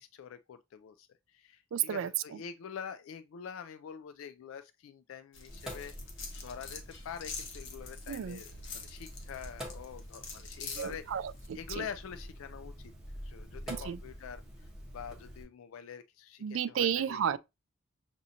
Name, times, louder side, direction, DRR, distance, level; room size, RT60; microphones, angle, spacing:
voice 1, 0.0-5.9 6.4-11.0 11.5-12.9 13.2-17.4, left 7 dB, 75° left, 0.3 m, -46 dB
voice 2, 1.7-2.4 8.1-8.4 10.8-11.8 13.8-14.0 16.4-17.4, right 9 dB, 70° right, 0.3 m, -32 dB
sound 1, 5.3-11.5, left 4 dB, 60° left, 1.0 m, -46 dB
Sink (filling or washing), 5.5-15.4, equal, 5° right, 1.2 m, -46 dB
6.0 x 2.6 x 2.7 m
head